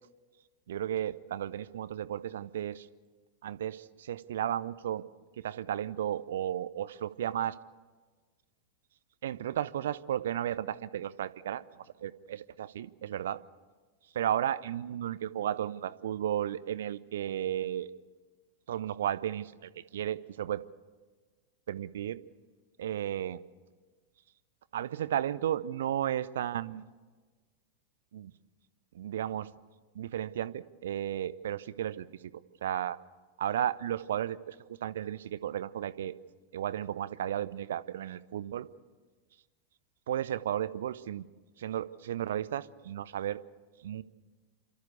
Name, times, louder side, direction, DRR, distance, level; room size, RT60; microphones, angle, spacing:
voice 1, 0.7-2.9 3.4-5.0 5.4-7.6 9.2-11.6 12.0-13.4 14.1-17.9 18.7-20.6 21.7-22.2 22.8-23.4 24.7-26.9 28.1-28.3 28.9-29.5 29.9-32.1 32.6-33.0 33.4-34.6 34.8-36.1 36.5-38.7 40.1-41.2 41.6-43.4 43.8-44.0, right 10 dB, 60° right, 17 dB, 0.6 m, -34 dB
28.5 x 13.5 x 8.2 m, 1.4 s
figure-of-eight pair, 90°, 0 cm